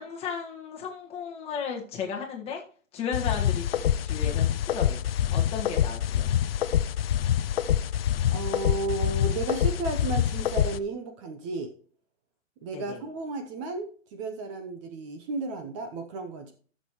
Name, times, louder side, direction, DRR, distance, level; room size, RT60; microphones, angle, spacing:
voice 1, 0.0-2.6 2.9-6.3 12.7-13.0, left 6 dB, 15° left, -1 dB, 1.5 m, -35 dB
sound 1, 3.1-10.8, left 10 dB, 50° left, 0.5 m, -26 dB
voice 2, 8.3-11.7 12.6-16.5, right 3 dB, 25° right, 6 dB, 0.8 m, -33 dB
14.0 x 6.6 x 3.0 m, 0.43 s
hypercardioid pair, 145°, 38 cm